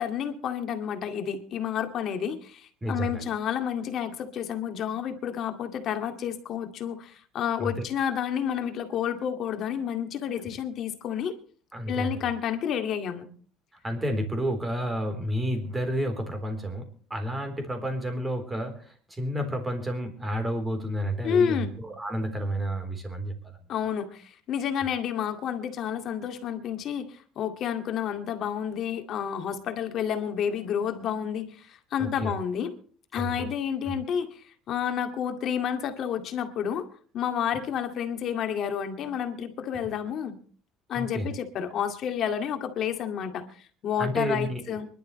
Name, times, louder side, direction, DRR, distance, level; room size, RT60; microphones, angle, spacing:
voice 1, 0.0-11.3 11.9-13.3 21.2-21.8 23.7-32.7 33.1-36.9 37.1-40.4 40.9-44.9, left 8 dB, 45° left, 7 dB, 2.1 m, -30 dB
voice 2, 2.8-3.3 7.6-7.9 10.4-10.5 11.7-12.3 13.8-23.6 32.0-32.3 33.1-33.5 33.8-34.0 39.7-39.8 40.9-41.3 44.0-44.8, equal, 10° right, 6 dB, 3.7 m, -31 dB
24.5 x 12.0 x 3.2 m, 0.44 s
cardioid pair, 140°, 0 cm